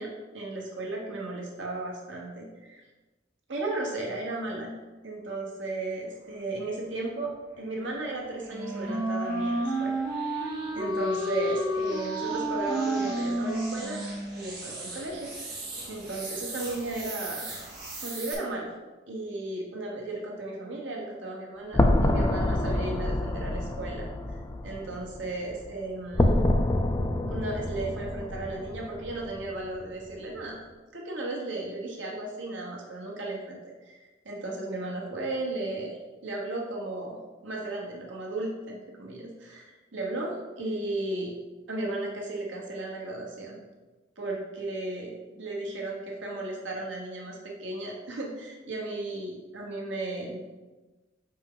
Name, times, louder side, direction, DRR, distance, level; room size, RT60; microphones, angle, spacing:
voice 1, 0.0-2.8 3.5-4.7 5.0-9.9 10.7-14.0 14.3-15.6 15.9-17.5 18.0-18.7 19.1-24.1 24.6-26.4 27.3-30.7 30.9-37.2 37.4-41.4 41.7-43.6 44.2-50.4, right 2 dB, 75° right, -2 dB, 1.1 m, -35 dB
sound 1, 6.8-18.3, right 2 dB, 45° right, 1.5 m, -42 dB
Wind instrument woodwind instrument, 8.5-14.4, right 1 dB, 20° right, 1.8 m, -30 dB
sound 2, 21.7-25.8 26.1-29.5, left 1 dB, 15° left, 0.3 m, -27 dB
5.8 x 4.3 x 3.8 m, 1.2 s
head